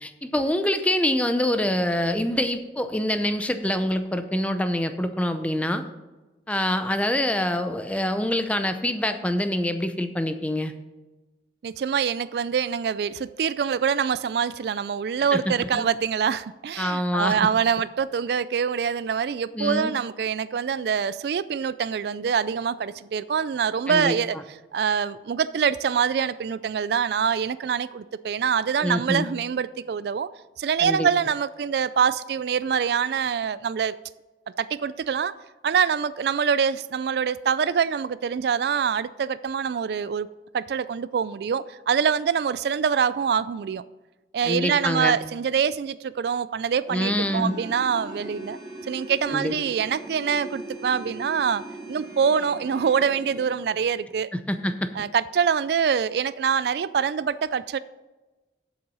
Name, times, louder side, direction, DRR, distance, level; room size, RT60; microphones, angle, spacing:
voice 1, 0.0-5.8 6.5-10.7 15.3-15.8 16.8-17.4 19.5-19.9 23.9-24.2 28.8-29.2 30.8-31.1 44.5-45.2 46.9-47.5 49.3-49.5 54.3-54.9, left 1 dB, 10° left, 9 dB, 0.6 m, -25 dB
voice 2, 11.6-24.4 24.7-30.3 30.6-33.9 34.6-35.3 35.6-40.3 40.5-43.8 44.3-48.6 48.9-51.6 51.9-54.3 54.9-57.8, right 7 dB, 65° right, 16 dB, 0.3 m, -25 dB
sound 1, 46.9-53.5, right 1 dB, 20° right, 2.6 m, -39 dB
7.8 x 7.2 x 5.5 m, 1.1 s
head